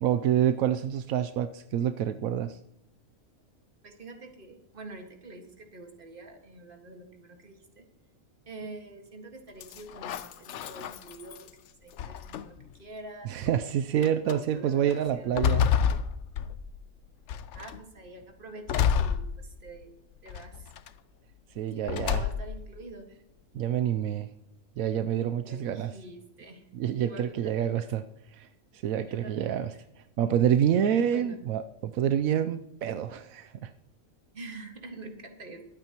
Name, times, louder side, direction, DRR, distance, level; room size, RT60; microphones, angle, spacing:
voice 1, 0.0-2.6 13.2-15.6 21.6-22.2 23.5-24.3 24.8-25.9 26.7-28.0 28.3-28.5 28.8-29.7 30.2-33.7, right 9 dB, 80° right, 11 dB, 1.0 m, -27 dB
voice 2, 3.8-7.9 8.5-11.5 11.8-13.6 14.1-15.4 17.5-19.9 20.2-20.7 21.7-23.1 25.4-26.7 27.0-27.9 29.1-29.8 31.1-31.4 34.3-35.7, right 2 dB, 40° right, 4 dB, 1.9 m, -46 dB
sound 1, 9.6-11.5 12.0-12.7 13.5-13.6 14.0-14.4 14.9-16.9 17.3-17.8 18.7-19.8 20.3-20.9 21.9-22.7, left 8 dB, 65° left, 0.8 m, -29 dB
22.0 x 8.9 x 2.9 m, 0.83 s
omnidirectional pair, 1.5 m